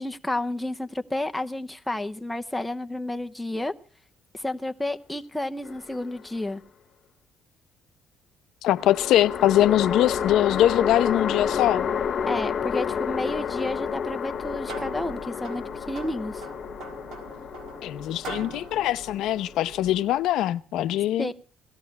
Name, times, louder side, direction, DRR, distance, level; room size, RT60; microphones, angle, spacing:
voice 1, 0.0-3.7 4.3-6.6 12.3-16.4 21.2-21.3, left 1 dB, 5° left, 0.7 m, -31 dB
sound 1, 5.6-6.5 8.8-20.1, left 7 dB, 40° left, 0.8 m, -30 dB
voice 2, 8.6-11.9 17.8-21.3, left 13 dB, 75° left, 0.7 m, -22 dB
sound 2, 14.2-20.1, right 4 dB, 70° right, 4.3 m, -43 dB
17.5 x 13.5 x 5.9 m
cardioid pair, 155°, 0 cm